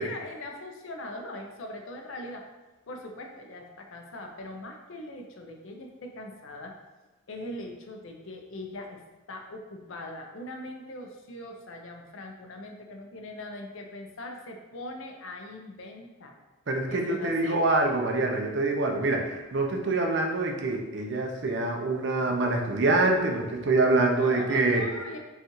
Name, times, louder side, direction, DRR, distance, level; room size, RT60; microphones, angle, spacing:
voice 1, 0.0-2.5 2.9-6.7 7.3-9.0 9.3-16.4 16.9-17.6 24.2-25.2, left 1 dB, 70° left, 3 dB, 0.5 m, -41 dB
voice 2, 16.7-24.8, right 2 dB, 55° right, 2 dB, 0.5 m, -25 dB
5.3 x 2.4 x 3.0 m, 1.2 s
head